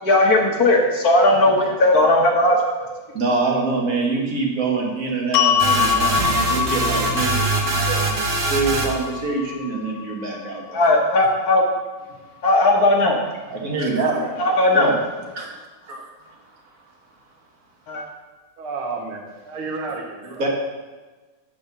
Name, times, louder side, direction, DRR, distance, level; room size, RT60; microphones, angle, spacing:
voice 1, 0.0-2.6 10.7-11.6 12.4-13.2 14.4-14.9 17.9-18.0, left 2 dB, 50° left, 0 dB, 1.4 m, -17 dB
voice 2, 3.1-8.2 8.5-10.8 13.5-14.2 14.7-14.9 15.3-15.5 15.9-16.1 20.2-20.5, right 3 dB, 45° right, 0 dB, 1.6 m, -25 dB
sound 1, 5.3-11.5, left 8 dB, 80° left, 0.9 m, -25 dB
sound 2, 5.6-9.1, right 3 dB, 60° right, 0.6 m, -23 dB
voice 3, 14.2-15.0 18.6-20.4, right 3 dB, 75° right, 0 dB, 1.9 m, -32 dB
8.7 x 4.2 x 6.7 m, 1.3 s
omnidirectional pair, 2.4 m